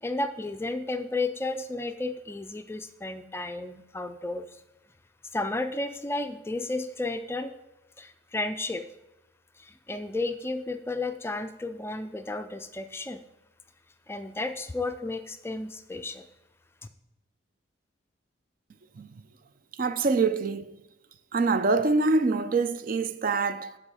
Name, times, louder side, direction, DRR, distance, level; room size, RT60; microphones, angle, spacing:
voice 1, 0.0-4.5 5.3-7.6 8.0-8.8 9.6-13.2 14.1-16.3, left 2 dB, 15° left, 0.4 m, -33 dB
voice 2, 19.7-20.7 21.3-23.8, right 3 dB, 45° right, 0.4 m, -25 dB
12.5 x 4.8 x 4.8 m
head